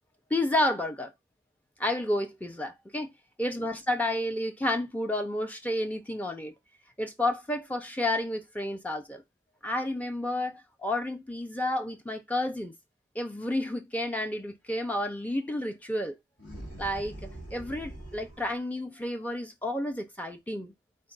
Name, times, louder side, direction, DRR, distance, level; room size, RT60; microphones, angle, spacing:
voice 1, 0.3-1.1 1.8-3.1 3.4-6.5 7.0-9.2 9.6-12.7 13.1-16.1 16.8-17.1 17.5-20.7, left 1 dB, 10° left, 0.6 m, -30 dB
sound 1, 16.4-18.6, right 1 dB, 65° left, 1.8 m, -43 dB
4.4 x 2.5 x 3.9 m
head